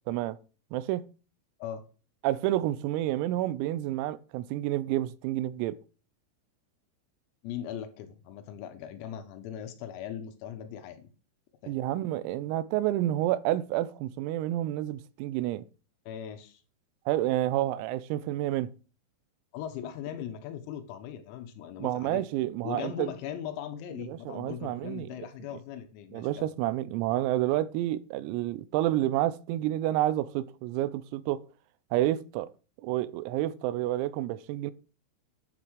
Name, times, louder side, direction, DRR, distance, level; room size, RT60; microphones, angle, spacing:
voice 1, 0.7-1.1 2.2-5.8 11.7-15.7 17.1-18.7 21.8-23.1 24.1-25.1 26.1-31.4 31.9-32.5 32.8-34.7, right 14 dB, 90° right, 3.5 m, -29 dB
voice 2, 7.4-11.1 11.6-11.8 16.1-16.6 19.5-22.2 22.6-26.5, left 9 dB, 90° left, 4.0 m, -39 dB
10.5 x 8.5 x 6.4 m
omnidirectional pair, 6.0 m